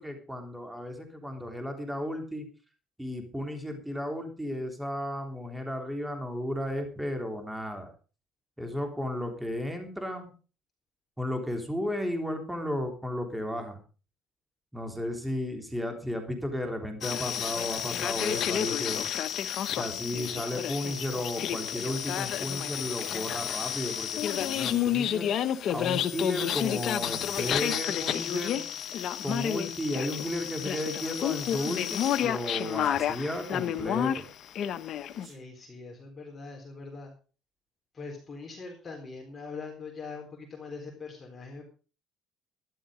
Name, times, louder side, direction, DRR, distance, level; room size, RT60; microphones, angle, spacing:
voice 1, 0.0-2.5 3.0-7.9 8.6-10.3 11.2-13.8 14.7-19.1 19.8-28.6 29.2-34.3, left 1 dB, 5° right, 4 dB, 3.5 m, -34 dB
sound 1, 17.0-35.3, left 10 dB, 60° left, 1.1 m, -30 dB
Sneeze, 32.8-33.0 35.1-35.4, right 3 dB, 35° right, 5.8 m, -56 dB
voice 2, 35.3-37.1 37.9-41.7, left 4 dB, 30° left, 0 dB, 4.0 m, -42 dB
13.0 x 11.5 x 5.1 m, 0.37 s
cardioid pair, 100°, 0 cm